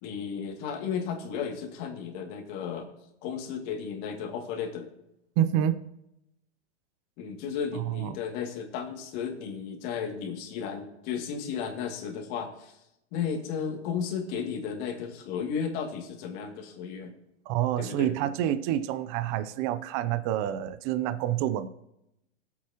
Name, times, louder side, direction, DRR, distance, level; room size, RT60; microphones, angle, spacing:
voice 1, 0.0-2.9 3.2-4.9 7.2-12.8 13.1-17.1 17.8-18.1, left 7 dB, 45° left, 2 dB, 2.4 m, -34 dB
voice 2, 5.4-5.8 7.7-8.1 17.5-21.7, right 11 dB, 35° right, 12 dB, 0.6 m, -28 dB
21.0 x 8.3 x 3.0 m, 0.85 s
hypercardioid pair, 140°, 35 cm